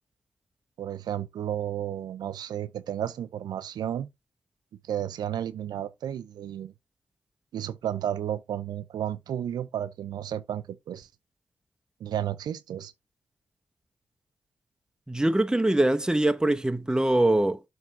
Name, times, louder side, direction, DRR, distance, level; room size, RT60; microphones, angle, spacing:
voice 1, 0.8-4.1 4.8-6.7 7.5-11.1 12.0-12.9, right 10 dB, 90° right, 0.5 m, -32 dB
voice 2, 15.1-17.6, right 1 dB, 10° right, 1.0 m, -23 dB
7.2 x 3.4 x 5.9 m
cardioid pair, 55°, 7 cm